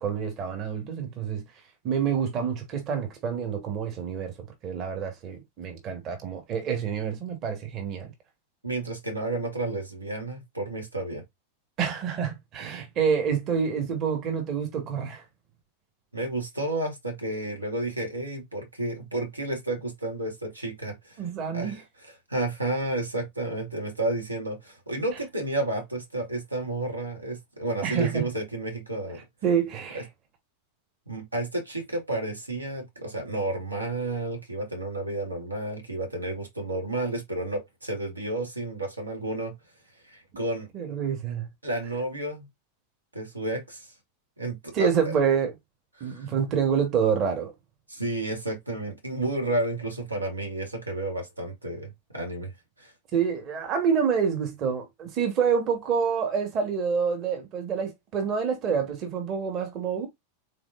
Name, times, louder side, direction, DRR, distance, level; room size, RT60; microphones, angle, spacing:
voice 1, 0.0-1.4 1.8-4.3 4.6-8.1 11.8-15.2 21.2-21.8 27.8-28.3 29.4-30.0 40.7-41.5 44.7-45.5 46.0-47.5 53.1-60.1, right 7 dB, 35° right, 1.3 m, -27 dB
voice 2, 8.6-11.2 16.1-21.2 21.5-21.7 22.3-29.2 29.9-30.0 31.1-39.5 40.0-40.7 41.6-42.5 43.1-43.9 44.4-44.9 46.0-46.3 47.9-52.5 52.8-52.9, right 2 dB, 85° right, 1.4 m, -31 dB
3.9 x 3.5 x 2.5 m
figure-of-eight pair, 90°, 0 cm